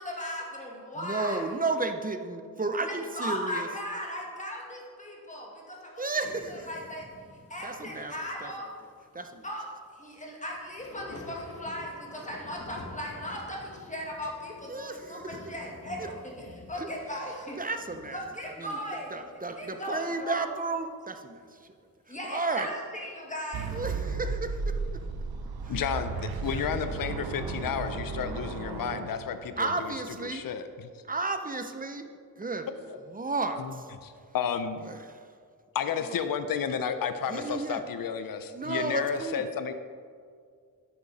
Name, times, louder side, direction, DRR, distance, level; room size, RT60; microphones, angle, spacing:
voice 1, 0.0-1.4 2.8-6.0 6.5-7.0 7.5-8.7 9.4-17.7 18.1-20.5 22.1-23.8, equal, 20° left, -2 dB, 2.0 m, -37 dB
voice 2, 0.9-3.7 6.0-6.7 7.6-8.1 8.4-8.7 9.1-9.4 14.7-15.4 16.0-16.1 16.8-16.9 17.6-18.2 18.6-18.8 19.1-21.7 22.1-22.7 23.7-25.1 25.6-25.8 26.4-26.7 29.6-30.5 31.1-32.1 32.4-33.9 34.8-35.3 35.9-36.2 37.3-37.8 38.5-39.4, right 3 dB, 25° right, 7 dB, 0.7 m, -33 dB
sound 1, 6.2-19.8 20.1-20.4 21.3-21.4, left 2 dB, 40° left, 1.3 m, -49 dB
sound 2, 23.5-29.7, right 4 dB, 90° right, 0.9 m, -34 dB
voice 3, 25.7-29.7 30.2-30.9 33.6-33.7 34.0-34.8 35.7-39.7, left 7 dB, 70° left, 10 dB, 0.6 m, -32 dB
10.5 x 8.6 x 4.2 m, 2.1 s
wide cardioid pair, 100°, 36 cm